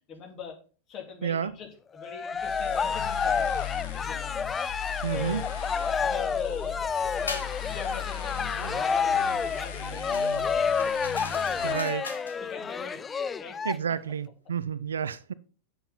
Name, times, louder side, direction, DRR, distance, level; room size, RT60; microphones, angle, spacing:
voice 1, 0.1-0.6 0.9-4.4 5.1-6.9 7.1-11.0 11.3-12.1 12.4-13.0 13.4-13.6 15.3-15.4, left 6 dB, 35° left, 3.2 m, -43 dB
voice 2, 1.2-1.5 5.0-5.4 11.6-12.0 13.7-15.3, right 7 dB, 70° right, 0.5 m, -30 dB
Cheering, 2.0-13.7, left 6 dB, 20° left, 0.3 m, -29 dB
sound 1, 2.4-11.7, left 8 dB, 55° left, 1.8 m, -38 dB
sound 2, 7.3-7.6 10.1-12.4, left 3 dB, 75° left, 1.4 m, -39 dB
8.4 x 7.7 x 4.2 m
figure-of-eight pair, 90°, 0 cm